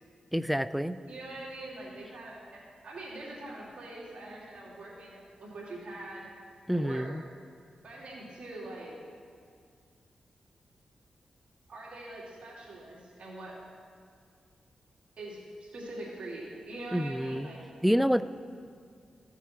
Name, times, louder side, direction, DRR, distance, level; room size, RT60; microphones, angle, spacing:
voice 1, 0.3-1.0 6.7-7.2 16.9-17.5 17.8-18.2, equal, ahead, 14 dB, 0.3 m, -27 dB
voice 2, 1.1-6.3 6.7-7.1 7.8-8.9 11.7-13.5 15.2-17.6, right 1 dB, 70° right, -5 dB, 3.0 m, -43 dB
14.0 x 7.2 x 4.4 m, 2.1 s
cardioid pair, 65°, 2 cm